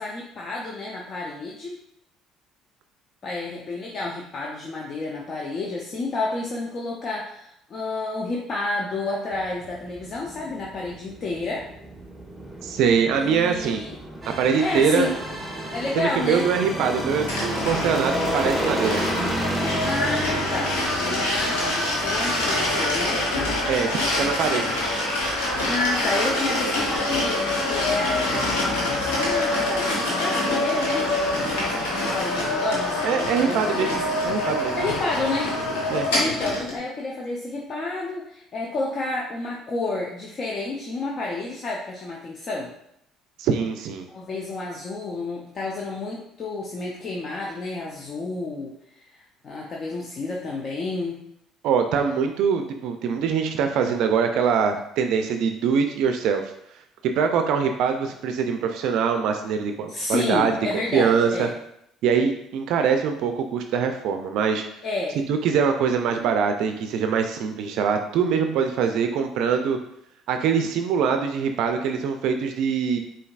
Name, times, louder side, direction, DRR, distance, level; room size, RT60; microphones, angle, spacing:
voice 1, 0.0-1.8 3.2-11.7 13.1-14.0 14.6-15.2 15.7-16.8 19.8-23.3 25.6-28.6 29.0-34.0 34.8-35.6 36.1-42.7 44.1-48.8 49.1-51.2 59.9-61.5 64.8-65.2, left 3 dB, 50° left, -2 dB, 0.6 m, -30 dB
sound 1, 9.3-28.7, right 1 dB, ahead, 1.2 m, -34 dB
voice 2, 12.6-13.8 14.3-15.1 16.0-19.0 23.7-24.7 33.0-34.7 35.9-36.1 43.4-44.1 51.6-56.5 57.2-60.5 60.9-61.5 62.0-64.6 65.3-69.8 70.3-73.0, right 6 dB, 70° right, 6 dB, 0.3 m, -23 dB
sound 2, 14.2-22.9, right 1 dB, 20° right, 1.2 m, -36 dB
sound 3, 17.3-36.8, left 1 dB, 85° left, 1.1 m, -25 dB
5.1 x 2.6 x 2.4 m, 0.74 s
hypercardioid pair, 65°, 0 cm